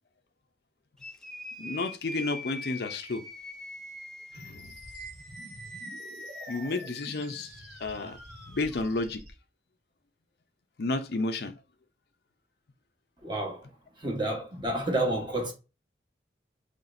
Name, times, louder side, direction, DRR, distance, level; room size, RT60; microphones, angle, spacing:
sound 1, 1.0-8.9, left 1 dB, 5° left, 0.5 m, -43 dB
voice 1, 1.6-3.2 4.4-4.7 6.5-7.5 7.8-8.2 8.5-9.2 10.8-11.6, left 3 dB, 60° left, 0.5 m, -31 dB
sound 2, 4.3-9.3, right 1 dB, 70° right, 1.8 m, -48 dB
voice 2, 13.2-13.6 14.0-15.5, right 1 dB, 25° right, 1.1 m, -29 dB
5.8 x 3.2 x 2.6 m
head